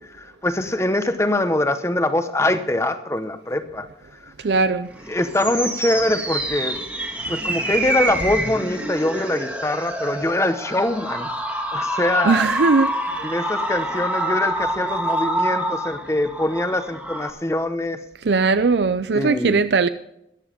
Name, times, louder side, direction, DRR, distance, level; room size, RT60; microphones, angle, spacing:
voice 1, 0.0-3.9 5.1-6.8 7.3-11.3 11.7-12.5 13.2-18.0 19.1-19.6, left 1 dB, 15° left, 0.9 m, -23 dB
voice 2, 4.4-4.9 7.3-7.4 12.2-13.2 18.2-19.9, right 4 dB, 70° right, 0.5 m, -19 dB
sound 1, 4.9-17.3, right 1 dB, 10° right, 1.7 m, -27 dB
14.0 x 11.0 x 5.1 m
head